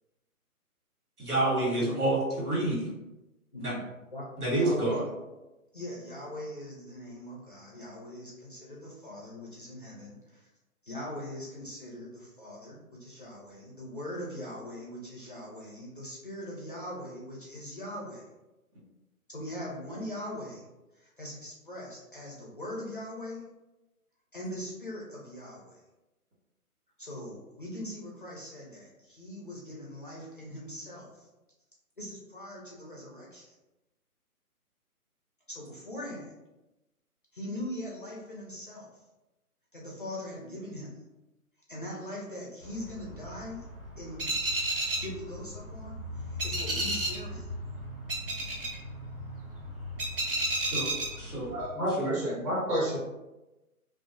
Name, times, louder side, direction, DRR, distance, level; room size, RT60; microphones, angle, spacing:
voice 1, 1.2-2.9 3.6-3.7 4.4-5.0 50.6-51.5 52.0-52.1, right 1 dB, 85° right, -6 dB, 1.4 m, -28 dB
voice 2, 1.7-2.1 3.5-4.2 4.5-5.1 5.7-10.5 10.8-18.2 19.3-20.7 20.9-23.5 24.3-25.8 27.0-31.3 32.0-33.6 35.5-36.3 37.3-38.9 39.7-40.9 41.7-43.6 44.0-44.4 45.0-47.5, left 1 dB, 40° left, -4 dB, 0.4 m, -41 dB
sound 1, 42.6-51.7, right 1 dB, 40° right, 0.5 m, -34 dB
voice 3, 51.5-53.0, equal, 20° right, -8 dB, 0.9 m, -30 dB
2.3 x 2.2 x 2.4 m, 1.0 s
figure-of-eight pair, 145°, 44 cm